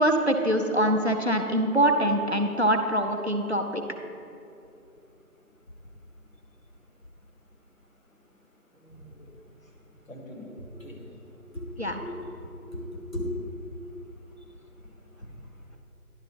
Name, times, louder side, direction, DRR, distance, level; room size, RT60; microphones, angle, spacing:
voice 1, 0.0-3.8 11.8-12.0, right 1 dB, 50° right, 5 dB, 0.5 m, -24 dB
voice 2, 8.9-9.3 10.1-11.1 11.5-11.7 12.0-13.3, left 1 dB, 60° left, 0 dB, 1.6 m, -38 dB
10.5 x 4.0 x 5.5 m, 2.7 s
figure-of-eight pair, 170°, 46 cm